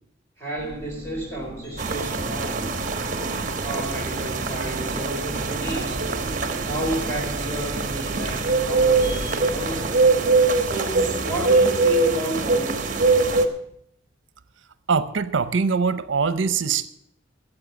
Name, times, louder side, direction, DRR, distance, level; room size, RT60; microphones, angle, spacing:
voice 1, 0.4-2.7 3.6-6.1 6.6-9.9 10.6-13.4, right 1 dB, 15° left, -1 dB, 4.3 m, -32 dB
sound 1, 0.6-11.6, equal, 30° left, 1.8 m, -39 dB
sound 2, 1.8-13.5, right 3 dB, 40° right, 1.2 m, -23 dB
voice 2, 14.9-16.9, right 5 dB, 80° right, 13 dB, 0.6 m, -22 dB
13.5 x 8.2 x 8.2 m, 0.75 s
head